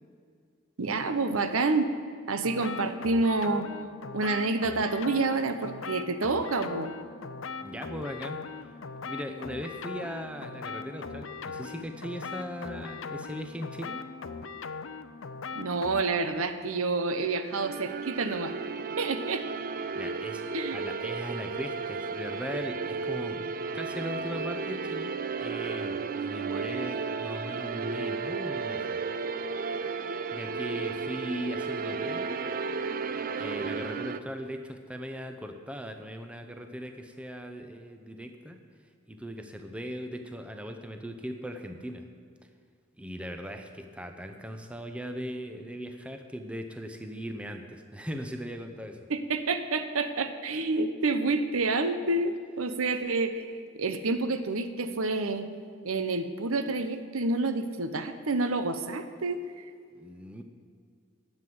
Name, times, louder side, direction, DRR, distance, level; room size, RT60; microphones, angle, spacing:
voice 1, 0.8-1.9 2.3-3.7 4.1-6.9 15.5-18.5 19.0-19.4 20.5-20.8 49.1-53.5 53.8-55.5 55.8-59.4, right 3 dB, 90° right, 9 dB, 0.8 m, -28 dB
sound 1, 2.4-16.0, left 4 dB, 70° left, 0.6 m, -40 dB
voice 2, 7.6-8.4 9.0-14.1 19.9-20.4 20.7-29.0 30.3-32.4 33.4-38.6 39.1-42.1 43.0-49.0 59.9-60.4, equal, 5° right, 6 dB, 0.7 m, -39 dB
sound 2, 17.5-34.2, right 4 dB, 45° right, 0.4 m, -33 dB
11.0 x 7.5 x 7.8 m, 2.1 s
head